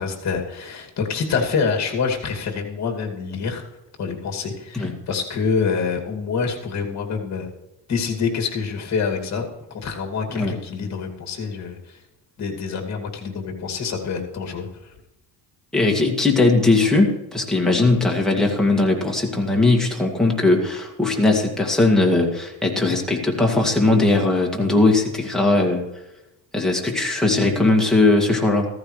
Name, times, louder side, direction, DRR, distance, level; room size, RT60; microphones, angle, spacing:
voice 1, 0.0-3.6 4.0-7.5 7.9-9.4 9.7-12.0 12.4-14.9, left 5 dB, 40° left, 1 dB, 2.5 m, -26 dB
voice 2, 15.7-25.8 26.5-28.7, left 2 dB, ahead, -1 dB, 2.1 m, -19 dB
14.5 x 14.5 x 3.2 m, 0.96 s
cardioid pair, 140°, 40 cm